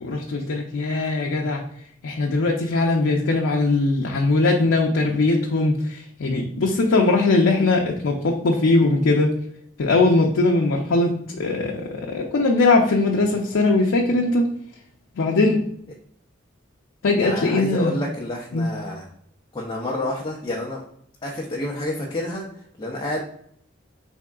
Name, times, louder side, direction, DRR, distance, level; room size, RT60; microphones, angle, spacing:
voice 1, 0.0-1.6 2.0-9.3 9.8-14.5 15.2-15.6 17.0-17.9 18.5-18.7, left 2 dB, 85° left, 0 dB, 0.5 m, -20 dB
voice 2, 17.2-19.1 19.5-20.8 21.2-22.5 22.8-23.2, left 1 dB, 25° left, -2 dB, 0.4 m, -29 dB
3.5 x 3.5 x 2.2 m, 0.67 s
head